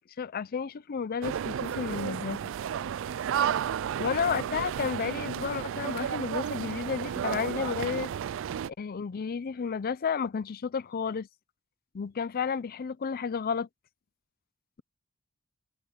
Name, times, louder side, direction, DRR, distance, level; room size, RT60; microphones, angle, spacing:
voice 1, 0.2-2.5 4.0-8.1 8.7-11.3 11.9-13.7, left 6 dB, 45° left, 0.4 m, -32 dB
sound 1, 1.2-8.7, right 8 dB, 65° right, 0.3 m, -32 dB
head